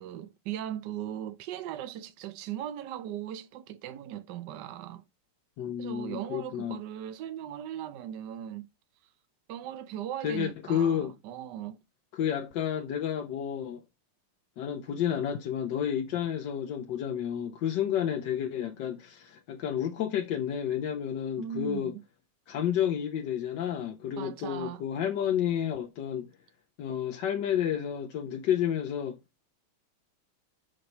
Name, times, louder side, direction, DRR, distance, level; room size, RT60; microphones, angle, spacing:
voice 1, 0.0-5.0 5.8-8.7 9.5-11.8 21.4-22.0 24.2-24.8, right 11 dB, 70° right, 1.0 m, -38 dB
voice 2, 5.6-6.8 10.2-11.1 12.1-13.8 14.6-21.9 22.5-26.3 26.8-29.2, left 9 dB, 65° left, 1.3 m, -30 dB
5.9 x 4.8 x 6.6 m
omnidirectional pair, 2.4 m